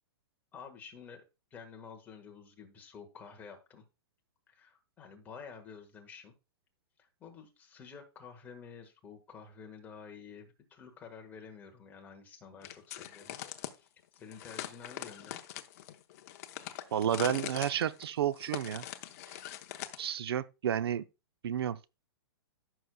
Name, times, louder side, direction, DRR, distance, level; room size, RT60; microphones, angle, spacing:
voice 1, 0.5-1.2 1.5-3.8 4.5-6.3 7.0-13.4 13.7-13.9 14.1-15.4 16.5-16.7, left 6 dB, 10° left, 1.3 m, -50 dB
sound 1, 12.6-13.8 14.3-20.1, left 12 dB, 35° left, 0.8 m, -42 dB
voice 2, 16.9-18.8 19.3-19.4 20.0-21.0 21.4-21.8, right 10 dB, 70° right, 0.6 m, -31 dB
15.0 x 6.3 x 2.2 m
hypercardioid pair, 165°, 14 cm